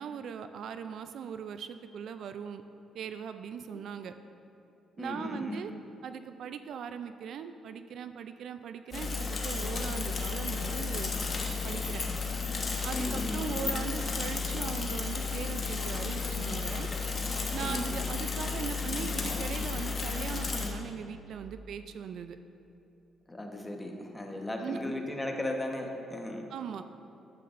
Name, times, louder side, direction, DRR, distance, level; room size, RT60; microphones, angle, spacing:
voice 1, 0.0-2.6 2.9-4.1 5.0-5.7 6.0-11.1 11.6-12.0 12.8-16.9 17.5-22.4 24.6-24.8 26.5-26.8, right 7 dB, 70° right, 10 dB, 0.3 m, -39 dB
voice 2, 5.0-5.6 12.9-13.7 17.6-17.9 23.3-26.5, left 1 dB, 15° left, 2 dB, 1.1 m, -36 dB
Bicycle / Mechanisms, 8.9-20.7, left 4 dB, 40° left, 1.2 m, -33 dB
11.5 x 8.4 x 2.6 m, 2.8 s
cardioid pair, 90°, 0 cm